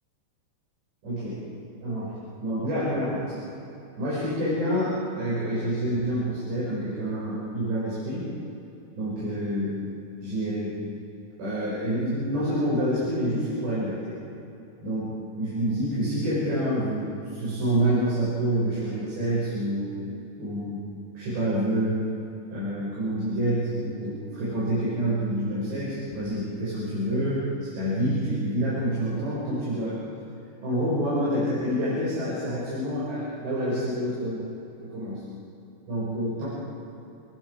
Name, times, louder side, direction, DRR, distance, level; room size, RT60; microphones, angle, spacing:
voice 1, 1.0-1.4 1.8-3.4 4.0-8.3 9.0-9.8 10.2-10.8 11.4-14.2 14.8-19.9 20.4-20.8 21.2-22.1 22.5-30.0 30.6-34.4 34.8-35.2 35.9-36.5, equal, 85° right, -8 dB, 8.0 m, -27 dB
30.0 x 18.5 x 4.8 m, 2.9 s
omnidirectional pair, 4.8 m